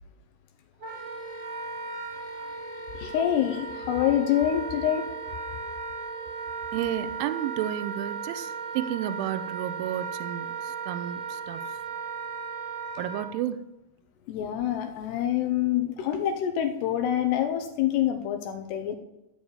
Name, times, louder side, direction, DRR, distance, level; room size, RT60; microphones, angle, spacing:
Wind instrument woodwind instrument, 0.8-13.3, right 5 dB, 45° right, 2.1 m, -36 dB
voice 1, 2.9-5.1 14.3-19.0, left 10 dB, 80° left, 7 dB, 2.5 m, -26 dB
voice 2, 6.7-11.7 13.0-13.6, right 11 dB, 85° right, 12 dB, 2.9 m, -32 dB
13.5 x 4.8 x 8.6 m, 0.92 s
omnidirectional pair, 5.8 m